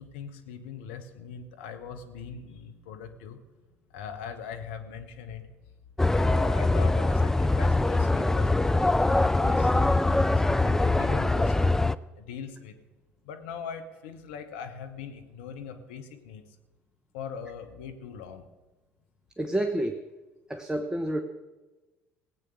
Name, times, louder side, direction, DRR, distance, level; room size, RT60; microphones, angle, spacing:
voice 1, 0.0-3.4 3.9-5.5 6.1-11.6 12.1-12.8 13.2-16.6 17.1-18.5, left 6 dB, 70° left, 7 dB, 1.3 m, -41 dB
sound 1, 6.0-12.0, left 2 dB, 5° left, 0.4 m, -23 dB
voice 2, 19.4-20.0 20.5-21.2, right 1 dB, 10° right, 5 dB, 1.0 m, -29 dB
18.0 x 8.4 x 6.5 m, 1.2 s
figure-of-eight pair, 60°, 6 cm